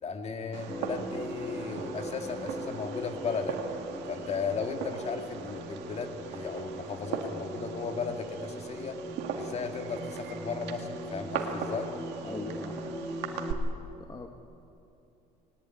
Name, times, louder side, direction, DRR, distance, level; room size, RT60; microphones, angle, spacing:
voice 1, 0.0-3.6 4.1-9.0 9.4-11.9, left 5 dB, 40° left, 5 dB, 2.1 m, -35 dB
Fireworks, 0.5-13.5, right 7 dB, 90° right, 2.1 m, -40 dB
sound 1, 0.7-13.6, equal, 5° left, 2.3 m, -40 dB
voice 2, 12.2-12.8 14.0-14.3, left 3 dB, 20° left, 4 dB, 1.3 m, -40 dB
19.5 x 19.5 x 9.4 m, 2.8 s
cardioid pair, 110°, 17 cm